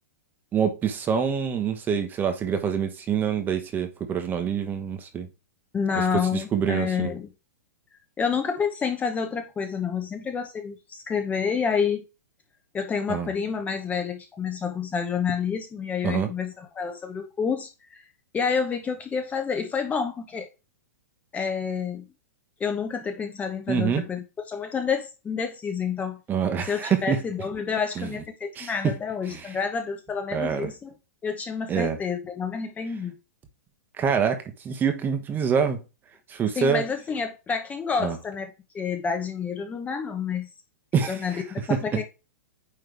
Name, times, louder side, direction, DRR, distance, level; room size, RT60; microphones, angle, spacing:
voice 1, 0.5-5.3 5.9-7.1 13.1-13.3 16.0-16.3 23.7-24.0 26.3-27.2 28.0-28.2 28.5-29.0 29.3-29.6 30.3-30.7 31.7-32.0 34.0-35.8 36.3-36.8 38.0-38.2 40.9-41.4 41.7-41.8, right 7 dB, 20° right, 1.1 m, -26 dB
voice 2, 5.7-7.3 8.2-12.0 12.7-18.0 18.3-20.5 21.3-22.1 22.6-26.2 26.7-30.9 31.2-33.1 36.5-38.5 38.7-40.5 41.1-42.0, left 6 dB, 15° left, 0.9 m, -29 dB
9.2 x 3.3 x 3.4 m
hypercardioid pair, 125°, 9 cm